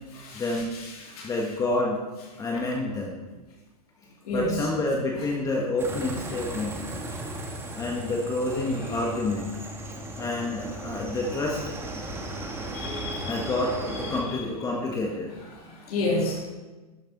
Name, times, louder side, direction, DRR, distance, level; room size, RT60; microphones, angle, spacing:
voice 1, 0.3-0.7 1.2-2.0 2.4-3.2 4.3-6.7 7.7-9.5 10.2-12.1 13.2-15.3, left 2 dB, 15° left, -1 dB, 1.3 m, -28 dB
voice 2, 1.0-1.3 2.5-2.6 4.2-4.5 12.7-13.4 14.2-14.4 15.7-16.4, left 2 dB, 65° left, -4 dB, 3.2 m, -30 dB
sound 1, 5.8-14.2, right 1 dB, 10° right, 1.3 m, -36 dB
12.0 x 6.9 x 4.0 m, 1.2 s
hypercardioid pair, 120°, 20 cm